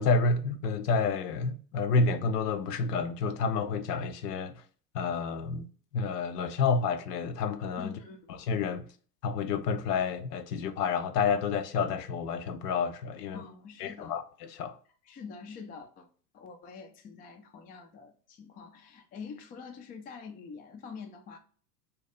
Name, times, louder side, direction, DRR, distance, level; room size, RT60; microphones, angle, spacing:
voice 1, 0.0-4.6 4.9-5.7 5.9-7.9 8.4-8.9 9.2-13.4 13.8-14.8, left 4 dB, 70° left, 0.6 m, -29 dB
voice 2, 7.8-8.3 13.3-14.2 15.1-16.1 16.3-21.4, left 5 dB, 20° left, 0.4 m, -45 dB
2.7 x 2.3 x 4.1 m
hypercardioid pair, 85°, 50 cm